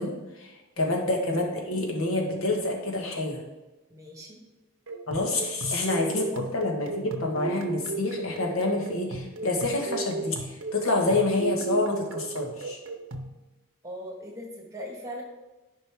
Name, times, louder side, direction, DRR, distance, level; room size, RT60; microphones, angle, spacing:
voice 1, 0.0-3.4 5.1-12.8, left 2 dB, 75° left, 1 dB, 1.4 m, -28 dB
voice 2, 3.9-4.4 10.9-11.0 13.8-15.2, equal, 15° right, -1 dB, 1.6 m, -40 dB
sound 1, 4.9-13.4, right 3 dB, 60° right, 0.7 m, -35 dB
11.0 x 5.3 x 3.5 m, 1.1 s
head